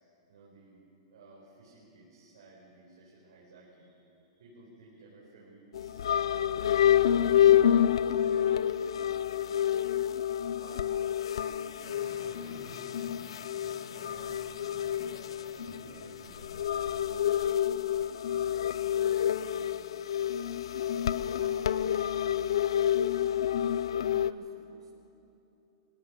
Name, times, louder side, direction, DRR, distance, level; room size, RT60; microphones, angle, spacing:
voice 1, 0.3-0.8 1.1-6.6 7.1-10.0 10.5-10.9 11.4-14.4 15.1-18.5 18.9-20.0 20.8-22.7, right 2 dB, 55° right, -6 dB, 5.0 m, -55 dB
sound 1, 5.7-24.3, left 10 dB, 75° left, 0.5 m, -28 dB
sound 2, 11.8-16.7 17.1-17.2, left 2 dB, 50° left, 2.9 m, -51 dB
voice 2, 23.9-25.0, right 4 dB, 90° right, 0 dB, 5.8 m, -53 dB
25.0 x 17.5 x 6.6 m, 2.8 s
supercardioid pair, 180°, 3 cm